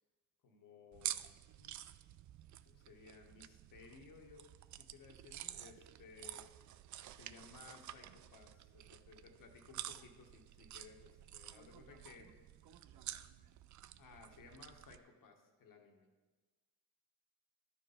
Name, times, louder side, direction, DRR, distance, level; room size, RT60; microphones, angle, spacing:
voice 1, 0.4-1.8 2.6-4.5 4.8-6.5 7.1-12.3 14.0-16.1, left 5 dB, 60° left, 3 dB, 1.5 m, -59 dB
sound 1, 0.9-15.0, right 12 dB, 50° right, 0.5 m, -50 dB
voice 2, 11.5-12.4 12.6-13.5, right 7 dB, 65° right, 9 dB, 0.9 m, -65 dB
12.0 x 4.5 x 5.0 m, 1.3 s
supercardioid pair, 60°, 37 cm